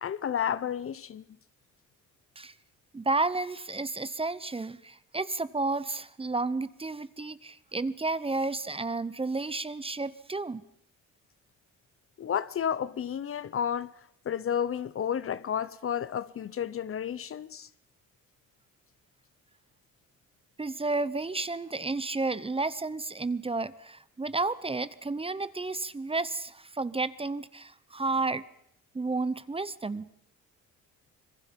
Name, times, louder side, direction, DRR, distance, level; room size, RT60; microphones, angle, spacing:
voice 1, 0.0-1.2 12.2-13.9 14.3-17.7, left 8 dB, 45° left, 0.8 m, -31 dB
voice 2, 2.9-10.6 20.6-28.4 28.9-30.1, right 3 dB, 20° right, 0.8 m, -31 dB
26.0 x 21.5 x 5.3 m
cardioid pair, 100°, 31 cm